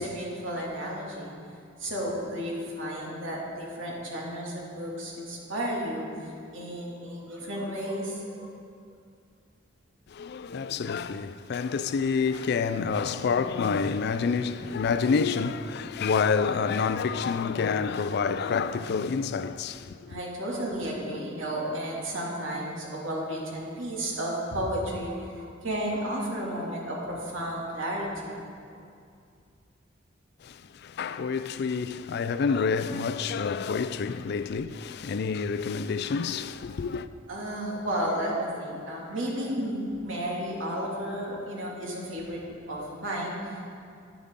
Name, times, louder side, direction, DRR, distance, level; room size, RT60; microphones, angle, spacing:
voice 1, 0.0-1.3 1.8-8.5 20.1-28.4 28.7-28.8 37.3-42.4 42.7-43.6, equal, 85° right, 2.5 m, -33 dB
voice 2, 10.1-20.2 30.4-37.1, left 5 dB, 55° left, 0.4 m, -28 dB
11.5 x 10.5 x 3.7 m
head